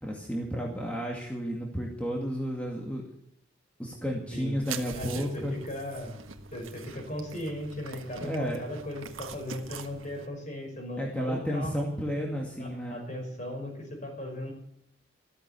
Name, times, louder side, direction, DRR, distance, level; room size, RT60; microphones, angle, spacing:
voice 1, 0.0-3.0 3.8-5.5 8.2-8.6 11.0-13.0, equal, 5° left, -1 dB, 2.1 m, -32 dB
sound 1, 4.6-10.3, right 6 dB, 90° right, 1.6 m, -43 dB
voice 2, 4.9-6.2 6.5-11.7 12.6-14.5, left 1 dB, 40° left, 2 dB, 5.6 m, -37 dB
14.5 x 13.5 x 7.0 m, 0.73 s
head